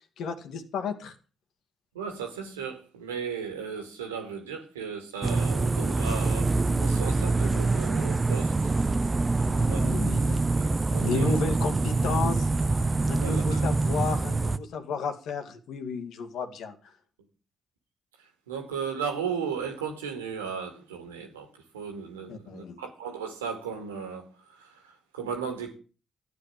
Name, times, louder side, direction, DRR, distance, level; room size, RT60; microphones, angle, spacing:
voice 1, 0.2-1.1 9.5-10.4 11.0-12.5 13.1-16.9 22.3-22.8, left 5 dB, 65° left, 2.3 m, -33 dB
voice 2, 1.9-8.7 9.6-9.8 10.6-11.3 13.2-13.6 18.2-21.5 21.7-25.8, right 6 dB, 85° right, 2.4 m, -36 dB
sound 1, 5.2-14.6, right 3 dB, 30° right, 1.0 m, -25 dB
14.0 x 9.8 x 7.7 m
hypercardioid pair, 40°, 0 cm